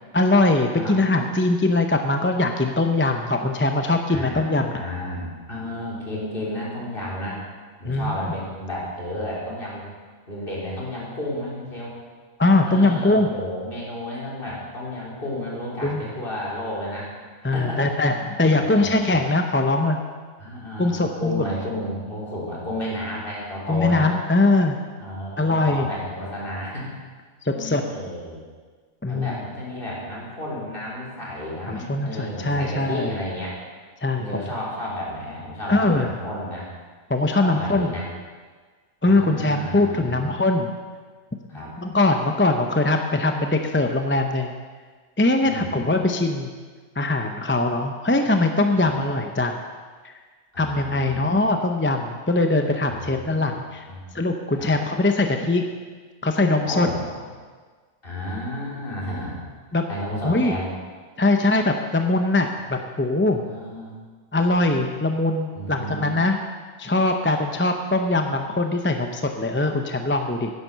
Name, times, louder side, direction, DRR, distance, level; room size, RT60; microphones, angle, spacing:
voice 1, 0.1-4.8 7.9-8.1 12.4-13.4 15.8-16.0 17.4-20.0 20.8-21.4 23.7-24.8 25.4-25.9 27.4-27.8 29.0-29.3 31.7-33.2 34.0-34.4 35.7-36.1 37.1-37.9 39.0-40.7 41.5-44.5 45.2-46.5 47.0-49.6 50.6-53.9 54.1-55.6 56.2-56.9 59.7-59.9 60.2-60.6 61.2-63.4 64.3-66.4 66.8-70.5, left 2 dB, 15° left, 5 dB, 0.6 m, -21 dB
voice 2, 4.1-7.4 7.8-9.8 10.3-11.9 12.6-17.1 17.4-17.9 18.3-19.1 20.4-24.1 25.0-26.9 27.5-28.4 29.1-33.6 34.1-36.7 37.3-38.1 39.0-40.2 41.5-41.7 45.4-45.8 48.8-48.9 50.5-51.2 52.9-53.1 53.9-54.1 54.6-54.7 56.7-57.3 58.0-59.4 59.9-60.7 63.4-63.9 65.5-66.1, left 1 dB, 50° left, -5 dB, 3.8 m, -32 dB
11.0 x 10.0 x 6.8 m, 1.5 s
omnidirectional pair, 1.2 m